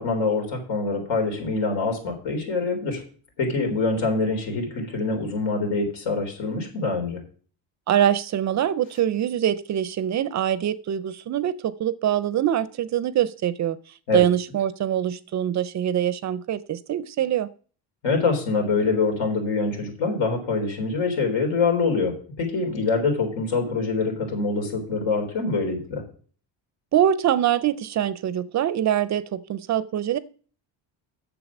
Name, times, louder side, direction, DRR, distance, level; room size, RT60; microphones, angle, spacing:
voice 1, 0.0-3.0 3.4-7.2 14.1-14.2 18.0-26.0, left 4 dB, 85° left, 3 dB, 3.9 m, -25 dB
voice 2, 7.9-13.8 14.1-17.5 26.9-30.2, right 10 dB, 40° right, 16 dB, 0.4 m, -24 dB
8.6 x 7.1 x 6.0 m, 0.42 s
cardioid pair, 155°, 46 cm